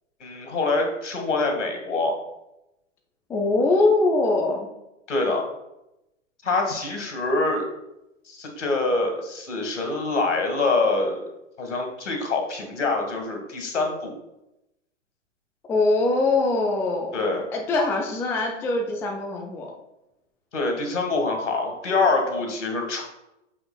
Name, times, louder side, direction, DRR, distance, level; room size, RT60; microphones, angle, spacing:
voice 1, 0.2-2.2 5.1-5.5 6.4-7.6 8.3-11.2 11.6-14.1 17.1-17.4 20.5-23.0, left 3 dB, 70° left, 3 dB, 2.0 m, -25 dB
voice 2, 3.3-4.7 15.7-17.2 17.5-19.7, left 2 dB, 5° left, 1 dB, 0.4 m, -22 dB
8.3 x 6.8 x 2.3 m, 0.91 s
figure-of-eight pair, 105°, 38 cm